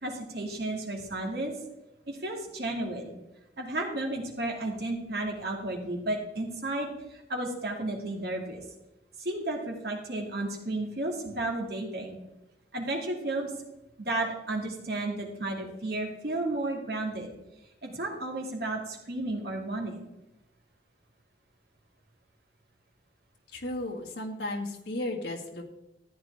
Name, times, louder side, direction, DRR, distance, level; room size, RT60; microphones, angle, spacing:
voice 1, 0.0-1.5 2.1-3.1 3.6-8.6 9.2-12.2 12.7-13.5 14.0-17.3 17.8-20.1, right 2 dB, 60° right, 0 dB, 2.5 m, -33 dB
voice 2, 23.5-25.6, left 1 dB, 75° left, 0 dB, 2.1 m, -34 dB
14.0 x 9.6 x 3.6 m, 0.92 s
head